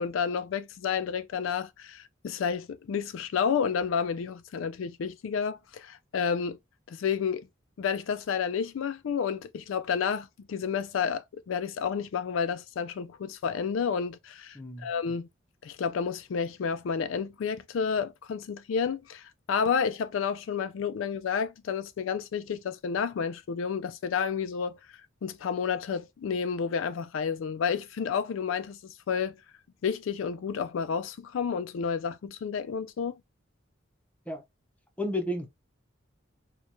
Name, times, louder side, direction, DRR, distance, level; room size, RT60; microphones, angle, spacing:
voice 1, 0.0-6.6 6.9-7.5 7.8-15.3 15.6-24.8 25.2-29.4 29.8-33.1, left 6 dB, 90° left, 0.4 m, -30 dB
voice 2, 14.5-14.9 34.3-34.4 35.0-35.5, left 1 dB, 10° left, 0.7 m, -32 dB
4.4 x 2.3 x 2.6 m
head